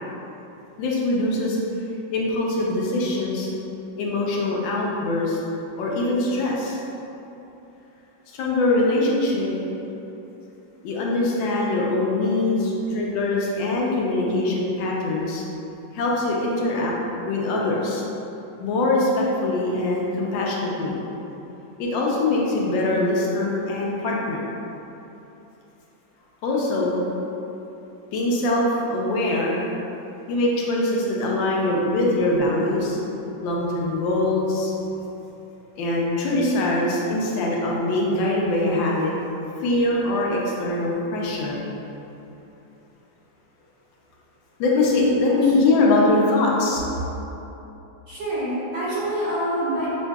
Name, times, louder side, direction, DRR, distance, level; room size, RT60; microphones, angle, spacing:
voice 1, 0.8-1.6 2.1-3.5 4.0-5.4 5.8-6.8 8.3-9.5 9.8-9.9 10.8-15.4 15.9-17.0 17.3-18.0 18.6-21.0 21.8-24.4 26.4-27.0 28.1-29.6 30.3-33.0 33.4-34.7 35.8-39.1 39.6-41.6 44.6-46.8, left 2 dB, 90° left, -3 dB, 1.4 m, -22 dB
voice 2, 48.1-49.9, right 1 dB, 70° right, -11 dB, 1.9 m, -26 dB
5.4 x 2.6 x 2.3 m, 3.0 s
omnidirectional pair, 2.0 m